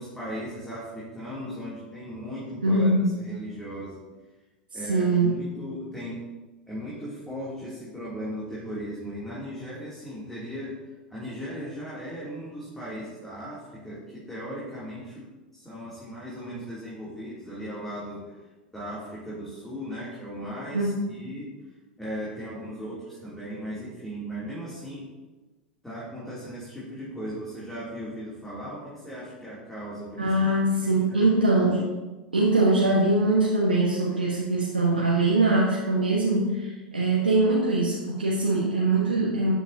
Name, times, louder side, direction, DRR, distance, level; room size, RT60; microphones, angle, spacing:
voice 1, 0.0-2.9 3.2-4.0 4.7-6.2 6.7-15.3 15.5-18.5 18.7-21.5 22.0-25.1 25.8-30.3 30.8-31.4, equal, 5° left, -8 dB, 3.0 m, -37 dB
voice 2, 2.6-3.1 4.9-5.4 20.7-20.9 30.2-31.9 32.3-39.5, right 2 dB, 85° right, -4 dB, 1.5 m, -22 dB
12.5 x 8.2 x 2.9 m, 1.2 s
figure-of-eight pair, 90°, 5 cm